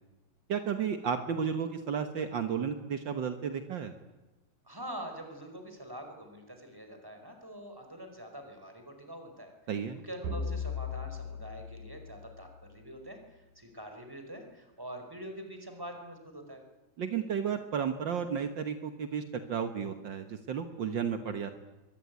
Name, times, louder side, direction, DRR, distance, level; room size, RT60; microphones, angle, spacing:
voice 1, 0.5-3.9 9.7-10.0 17.0-21.5, right 7 dB, 65° right, 8 dB, 1.1 m, -33 dB
voice 2, 4.6-9.5 9.9-16.6, right 1 dB, 5° right, 5 dB, 4.6 m, -45 dB
sound 1, 10.2-12.9, left 4 dB, 90° right, 5.1 m, -38 dB
23.5 x 23.0 x 9.6 m, 1.1 s
omnidirectional pair, 3.9 m